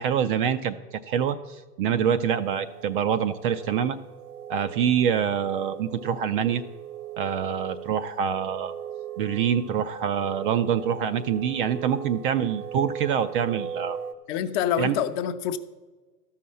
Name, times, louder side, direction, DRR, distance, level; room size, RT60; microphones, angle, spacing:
voice 1, 0.0-4.0 4.5-6.6 7.2-8.7 9.2-14.0 14.8-15.0, right 8 dB, 35° right, 0.4 m, -25 dB
sound 1, 2.1-14.1, right 9 dB, 70° right, 1.0 m, -39 dB
voice 2, 14.3-15.6, left 9 dB, 30° left, 0.6 m, -26 dB
13.0 x 5.7 x 7.5 m
hypercardioid pair, 110°, 47 cm